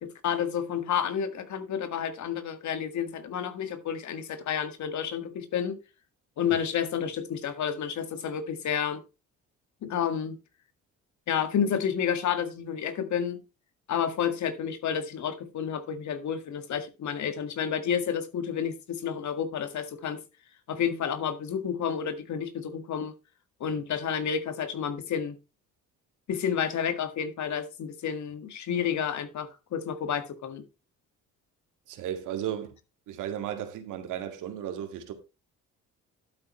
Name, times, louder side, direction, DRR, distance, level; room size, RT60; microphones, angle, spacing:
voice 1, 0.0-5.8 6.4-9.0 9.8-10.4 11.3-13.4 13.9-20.2 20.7-23.1 23.6-25.4 26.3-30.6, left 8 dB, 70° left, 1.8 m, -30 dB
voice 2, 31.9-32.7 33.1-35.1, right 10 dB, 90° right, 2.1 m, -34 dB
12.0 x 8.6 x 3.1 m
cardioid pair, 90°, 30 cm